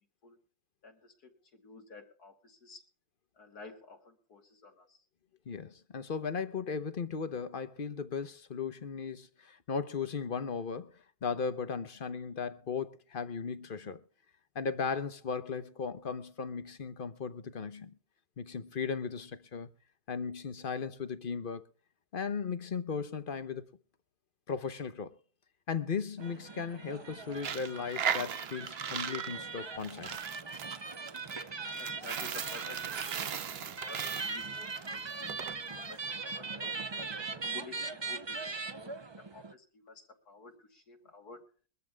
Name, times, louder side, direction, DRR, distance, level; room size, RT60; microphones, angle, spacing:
voice 1, 0.8-2.8 3.3-5.0 31.7-36.7 37.2-41.4, left 4 dB, 80° left, 3.1 m, -52 dB
voice 2, 5.5-14.0 14.5-18.0 18.4-19.7 20.1-21.7 22.1-23.7 24.5-25.2 25.7-30.2, left 5 dB, 40° left, 0.9 m, -37 dB
sound 1, 26.2-39.5, right 4 dB, 35° right, 0.4 m, -40 dB
Coin (dropping), 27.3-35.5, right 8 dB, 50° right, 0.8 m, -38 dB
23.0 x 14.0 x 2.3 m
omnidirectional pair, 1.6 m